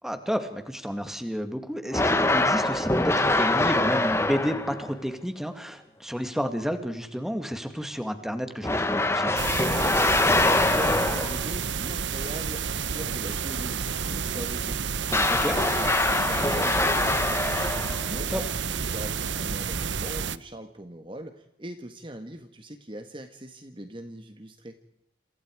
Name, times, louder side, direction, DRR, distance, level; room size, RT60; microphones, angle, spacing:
voice 1, 0.0-9.3 15.4-15.6 18.3-18.4, equal, ahead, 6 dB, 2.2 m, -31 dB
sound 1, 1.9-4.9 8.6-11.5 15.1-18.2, left 2 dB, 15° left, 1.3 m, -24 dB
sound 2, 9.4-20.4, right 6 dB, 80° right, 0.9 m, -30 dB
voice 2, 10.3-17.6 17.9-24.8, right 1 dB, 25° right, 7 dB, 1.5 m, -41 dB
28.0 x 28.0 x 4.8 m, 0.80 s
head